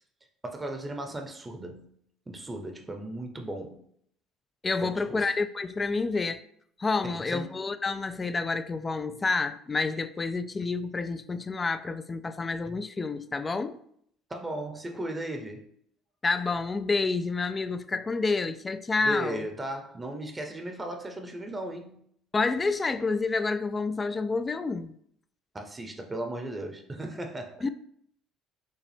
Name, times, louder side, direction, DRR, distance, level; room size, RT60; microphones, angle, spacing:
voice 1, 0.4-1.9 2.3-3.8 4.8-5.4 7.0-7.5 14.3-15.7 19.1-22.1 25.5-27.7, right 1 dB, 20° right, 0.7 m, -36 dB
voice 2, 4.6-6.4 6.8-13.8 16.2-19.5 22.3-24.9 27.6-27.7, left 3 dB, 25° left, 0.3 m, -29 dB
5.2 x 2.1 x 3.4 m
hypercardioid pair, 65°, 0 cm